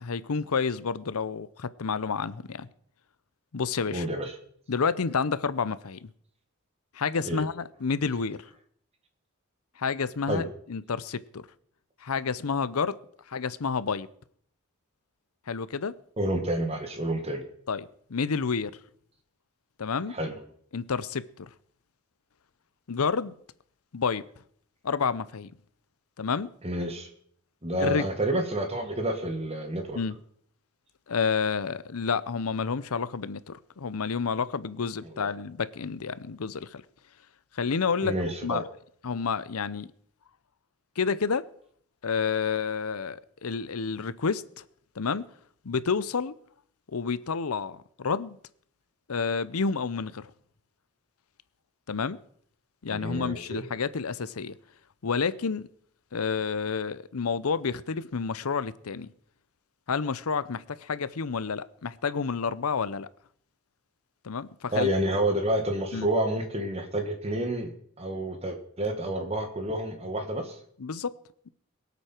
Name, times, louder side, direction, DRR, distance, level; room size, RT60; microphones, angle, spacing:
voice 1, 0.0-2.7 3.5-4.1 4.7-6.1 6.9-8.5 9.8-11.5 12.0-13.0 13.3-14.1 15.5-16.0 17.7-18.7 19.8-20.2 20.7-21.5 22.9-23.4 23.9-24.3 24.8-25.5 26.2-26.5 27.8-28.0 29.9-30.2 31.1-36.8 37.5-38.2 38.4-38.6 39.0-39.9 41.0-41.5 42.0-44.6 45.0-45.3 45.6-46.3 46.9-48.4 49.1-50.3 51.9-52.2 52.8-54.6 55.0-55.7 56.1-59.1 59.9-63.1 64.2-64.9 65.9-66.1 70.8-71.1, left 5 dB, 85° left, 0.7 m, -29 dB
voice 2, 3.9-4.3 7.2-7.4 10.3-10.4 16.2-17.4 20.1-20.4 26.6-27.1 27.6-30.0 35.1-35.3 38.0-38.6 52.9-53.6 64.7-67.7 68.0-70.6, right 1 dB, 30° right, 1.9 m, -29 dB
22.5 x 8.3 x 4.5 m
head